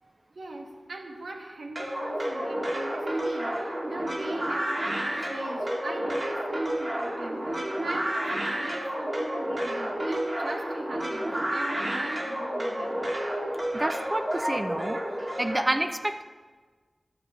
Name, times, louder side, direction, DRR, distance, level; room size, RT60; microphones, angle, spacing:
voice 1, 0.0-13.0, right 2 dB, 85° right, 1 dB, 1.9 m, -41 dB
sound 1, 1.8-15.6, right 1 dB, 40° right, 2.4 m, -30 dB
voice 2, 13.7-15.0 15.4-16.2, right 1 dB, 25° right, 7 dB, 0.7 m, -28 dB
12.0 x 9.5 x 7.2 m, 1.4 s
wide cardioid pair, 85°, 0 cm